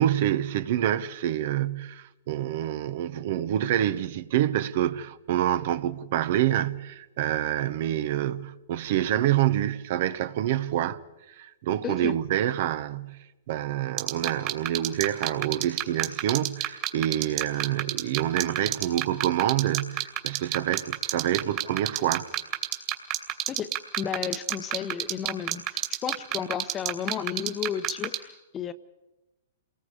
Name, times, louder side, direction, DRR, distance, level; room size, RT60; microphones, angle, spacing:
voice 1, 0.0-11.0 11.4-22.3, right 12 dB, 55° right, 1.0 m, -27 dB
voice 2, 11.8-12.2 23.5-28.7, left 8 dB, 25° left, 1.0 m, -33 dB
sound 1, 14.0-28.2, right 15 dB, 40° right, 2.7 m, -26 dB
28.5 x 19.5 x 5.0 m
hypercardioid pair, 130°, 0 cm